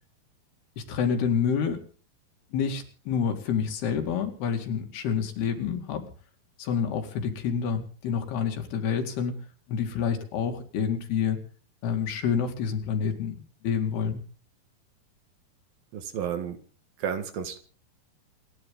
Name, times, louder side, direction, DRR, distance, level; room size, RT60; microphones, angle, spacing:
voice 1, 0.8-1.8 2.5-6.1 6.6-9.4 9.7-11.4 11.8-14.2, left 7 dB, 80° left, 5 dB, 4.3 m, -28 dB
voice 2, 15.9-16.6 17.0-17.6, right 8 dB, 70° right, 9 dB, 3.4 m, -31 dB
28.5 x 10.5 x 3.8 m, 0.40 s
omnidirectional pair, 4.5 m